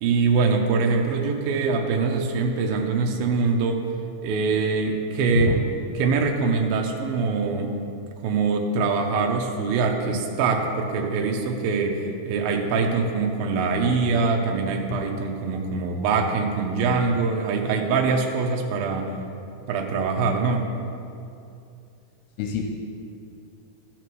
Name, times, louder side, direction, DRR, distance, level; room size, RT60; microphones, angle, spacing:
voice 1, 0.0-3.9 4.2-5.6 6.0-7.8 8.2-19.1 19.7-20.7, right 4 dB, 75° right, 2 dB, 2.4 m, -23 dB
voice 2, 5.4-5.6 14.9-15.0 22.4-22.6, left 8 dB, 80° left, 2 dB, 2.7 m, -25 dB
13.0 x 5.9 x 4.6 m, 2.5 s
omnidirectional pair, 4.7 m